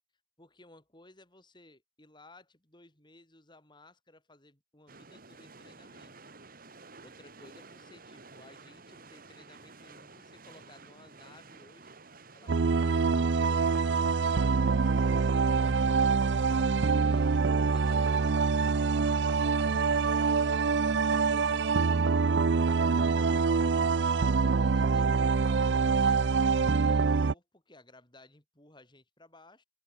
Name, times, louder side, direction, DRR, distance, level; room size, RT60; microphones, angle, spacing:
voice 1, 0.4-6.1 7.0-11.9 12.3-16.2 16.8-17.4 17.7-19.0 19.6-22.2 22.7-23.7 24.2-25.7 26.0-26.3 26.8-29.6, left 2 dB, 25° left, 7.2 m, -58 dB
sound 1, 4.9-20.6, right 3 dB, 50° right, 3.3 m, -52 dB
sound 2, 12.5-27.3, right 4 dB, 75° right, 0.6 m, -25 dB
open air
head